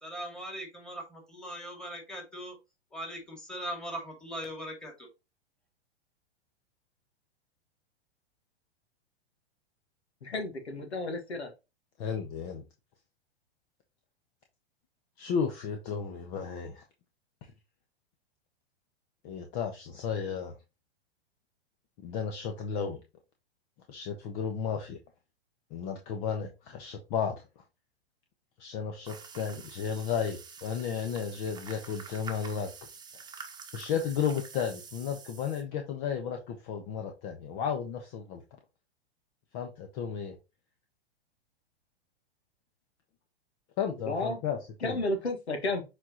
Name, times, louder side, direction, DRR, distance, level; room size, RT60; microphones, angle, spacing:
voice 1, 0.0-2.6 2.9-5.1, equal, ahead, 2.5 m, -40 dB
voice 2, 10.2-11.5 44.1-44.4 44.8-45.8, left 2 dB, 80° left, 1.8 m, -32 dB
voice 3, 12.0-12.6 15.2-16.8 19.2-20.5 22.0-23.0 23.9-25.0 25.7-27.3 28.6-32.7 33.7-38.4 39.5-40.3 43.8-44.6 44.8-45.0, left 7 dB, 45° left, 1.3 m, -33 dB
sound 1, 29.1-35.6, right 5 dB, 15° right, 1.2 m, -47 dB
7.5 x 4.4 x 3.0 m
hypercardioid pair, 110°, 32 cm